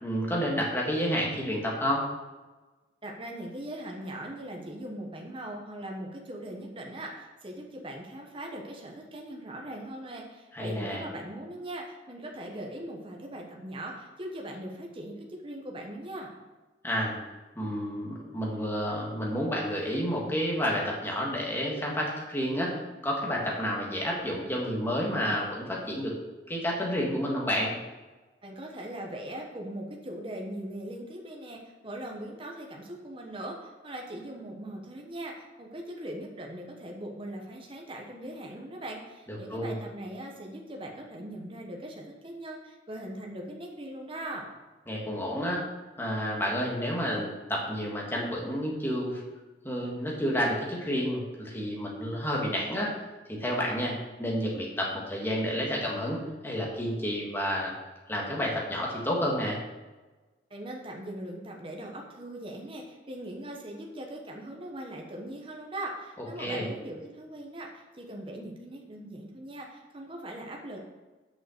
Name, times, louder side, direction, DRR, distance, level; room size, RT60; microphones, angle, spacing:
voice 1, 0.0-2.0 10.5-11.0 16.8-17.2 17.6-22.8 23.0-26.1 26.5-27.7 39.3-39.7 44.9-45.6 46.0-49.2 49.6-52.9 53.3-53.9 54.2-57.7 58.1-59.6 66.4-66.7, equal, 15° left, -3 dB, 1.8 m, -30 dB
voice 2, 3.0-16.3 28.4-44.5 60.5-70.8, right 1 dB, 30° right, 0 dB, 1.1 m, -40 dB
6.8 x 5.6 x 6.4 m, 1.2 s
head